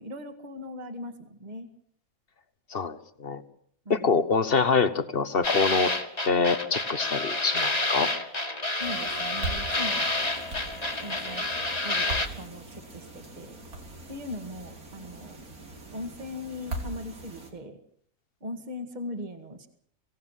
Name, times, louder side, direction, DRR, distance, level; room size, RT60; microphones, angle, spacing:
voice 1, 0.0-1.7 3.9-4.1 8.8-10.1 11.0-11.5 11.8-13.6 14.1-15.5 15.9-17.8 18.4-19.7, left 1 dB, 30° right, 7 dB, 2.2 m, -39 dB
voice 2, 2.7-3.4 3.9-5.9 6.3-8.1, left 4 dB, 45° left, 13 dB, 1.4 m, -25 dB
sound 1, 5.4-12.3, left 2 dB, 25° left, 2.1 m, -29 dB
sound 2, 8.8-17.5, right 2 dB, 90° right, 4.1 m, -40 dB
24.5 x 17.0 x 7.5 m, 0.64 s
omnidirectional pair, 1.5 m